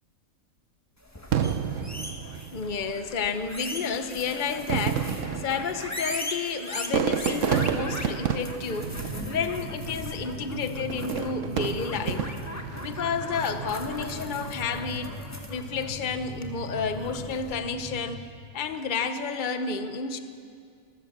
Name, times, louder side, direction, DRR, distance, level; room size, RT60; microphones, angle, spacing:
sound 1, 1.0-17.5, left 1 dB, 10° left, 1.6 m, -39 dB
Fireworks, 1.3-2.9 3.8-3.9 4.5-9.8 10.9-12.7 13.2-13.7, right 8 dB, 65° right, 1.2 m, -30 dB
voice 1, 2.5-12.3 12.8-15.1 15.5-18.2 18.5-20.2, left 5 dB, 40° left, 9 dB, 1.1 m, -31 dB
sound 2, 8.7-18.0, right 1 dB, 50° right, 8.4 m, -39 dB
25.5 x 15.0 x 7.4 m, 2.3 s
omnidirectional pair, 1.4 m